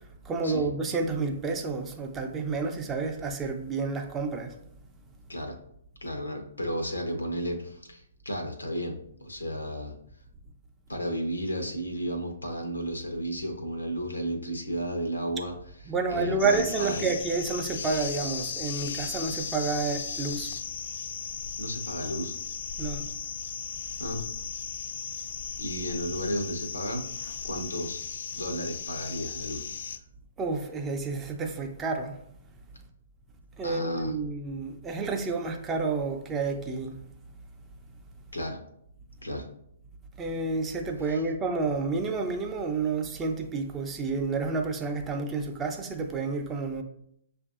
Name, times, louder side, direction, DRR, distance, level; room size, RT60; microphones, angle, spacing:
voice 1, 0.2-4.5 15.8-20.5 22.8-23.1 30.4-32.2 33.6-37.0 40.2-46.8, right 4 dB, 20° right, 0.5 m, -30 dB
voice 2, 6.0-9.9 10.9-15.6 16.1-17.1 21.6-22.3 24.0-24.2 25.6-27.0 27.4-28.0 28.3-29.6 33.6-34.1 38.3-38.6 39.2-39.5 41.1-41.2, equal, 90° left, 0.8 m, -33 dB
sound 1, 16.4-30.0, left 7 dB, 60° left, 0.3 m, -36 dB
6.4 x 2.5 x 2.4 m
figure-of-eight pair, 125°, 0 cm